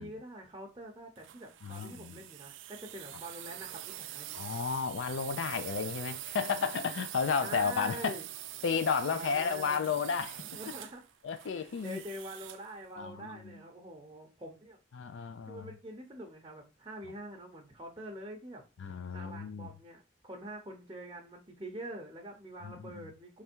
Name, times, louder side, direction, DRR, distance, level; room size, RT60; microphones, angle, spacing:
voice 1, 0.0-4.3 7.4-8.3 9.1-9.9 10.5-11.0 11.4-14.8 15.5-18.6 19.1-23.4, right 1 dB, 20° right, 0.8 m, -45 dB
sound 1, 1.2-12.7, right 13 dB, 80° right, 0.4 m, -44 dB
voice 2, 1.6-2.2 4.3-8.2 8.6-10.4 11.2-12.0 13.0-13.6 14.9-15.7 18.8-19.7 22.6-23.1, left 6 dB, 75° left, 0.4 m, -33 dB
3.4 x 3.4 x 4.4 m
head